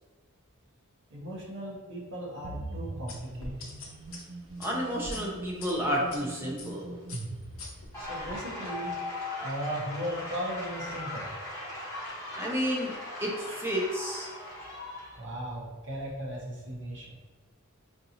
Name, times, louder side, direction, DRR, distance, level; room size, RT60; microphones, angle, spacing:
voice 1, 1.1-3.8 7.9-9.0 9.4-11.3 15.2-17.2, equal, 55° right, -3 dB, 0.8 m, -37 dB
sound 1, 2.4-8.4, right 2 dB, 80° right, 0.4 m, -42 dB
sound 2, 3.1-6.2 6.6-6.8 7.1-8.4, left 2 dB, 75° left, 0.8 m, -44 dB
voice 2, 4.6-7.0 12.4-13.0 13.2-14.3, equal, 10° right, -3 dB, 0.5 m, -31 dB
sound 3, 7.9-15.2, left 2 dB, 15° left, 1.0 m, -39 dB
3.6 x 2.7 x 2.8 m, 1.3 s
head